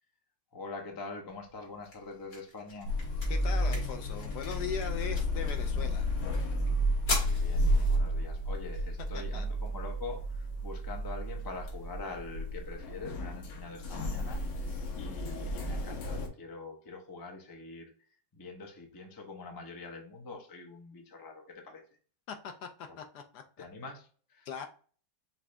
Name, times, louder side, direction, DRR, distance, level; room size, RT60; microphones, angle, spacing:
voice 1, 0.5-2.9 7.2-14.4 14.9-17.9 18.3-21.8 23.6-24.5, left 3 dB, 25° left, 2 dB, 0.5 m, -44 dB
sound 1, 1.3-13.3, left 2 dB, 50° left, 2.0 m, -44 dB
sound 2, 2.8-16.3, equal, 90° left, 1.7 m, -32 dB
voice 2, 3.3-6.1 9.1-9.5 22.3-22.4 22.6-22.7 23.0-23.4 24.5-24.7, left 7 dB, 70° left, 6 dB, 1.1 m, -39 dB
5.9 x 2.6 x 3.3 m, 0.41 s
omnidirectional pair, 2.0 m